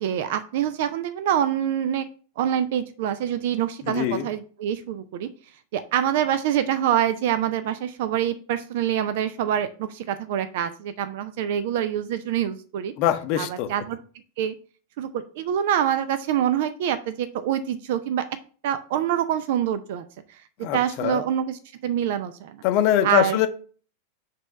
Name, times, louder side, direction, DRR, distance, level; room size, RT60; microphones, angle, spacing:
voice 1, 0.0-2.1 2.4-5.3 5.7-12.9 13.4-14.0 14.4-14.5 15.0-18.3 18.6-20.4 20.7-22.6 23.0-23.5, right 10 dB, 50° right, 12 dB, 0.4 m, -25 dB
voice 2, 3.8-4.3 13.0-13.7 20.6-21.2 22.6-23.5, left 11 dB, 45° left, 8 dB, 0.7 m, -23 dB
6.6 x 3.3 x 5.6 m, 0.41 s
figure-of-eight pair, 90°, 0 cm